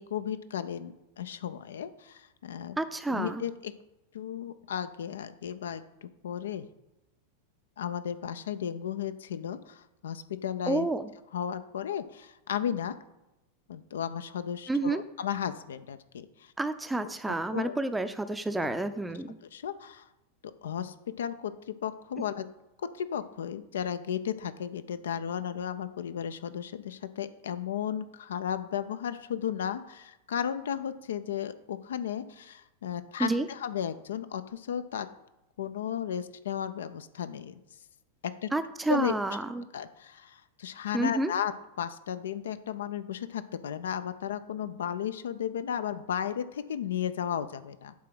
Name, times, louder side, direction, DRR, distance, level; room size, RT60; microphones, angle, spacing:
voice 1, 0.0-2.8 3.1-3.7 4.1-6.7 7.8-10.9 11.3-13.0 13.7-16.5 17.3-17.7 19.4-20.1 20.6-22.5 22.8-35.1 35.6-37.6 38.2-38.5 38.9-39.1 39.7-41.5 41.8-47.9, left 9 dB, 65° left, 12 dB, 0.4 m, -34 dB
voice 2, 2.8-3.4 10.7-11.1 14.7-15.0 16.6-19.4 33.2-33.5 38.5-39.7 40.9-41.3, right 2 dB, 5° right, 10 dB, 0.5 m, -29 dB
8.3 x 3.7 x 6.0 m, 0.94 s
figure-of-eight pair, 90°, 0 cm